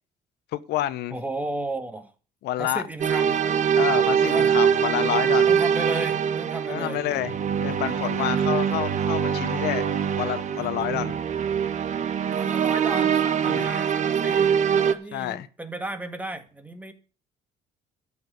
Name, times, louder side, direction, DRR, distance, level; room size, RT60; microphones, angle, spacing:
voice 1, 0.5-1.1 2.4-2.8 3.8-5.5 6.7-7.3 7.6-9.9 10.2-11.1 13.5-13.7 15.1-15.5, left 13 dB, 80° left, 1.0 m, -28 dB
voice 2, 1.1-2.1 2.6-3.4 4.2-4.5 5.4-7.0 12.3-16.9, right 2 dB, 10° right, 2.0 m, -34 dB
sound 1, 3.0-14.9, right 8 dB, 45° right, 1.3 m, -23 dB
12.5 x 6.4 x 8.2 m
cardioid pair, 110°, 17 cm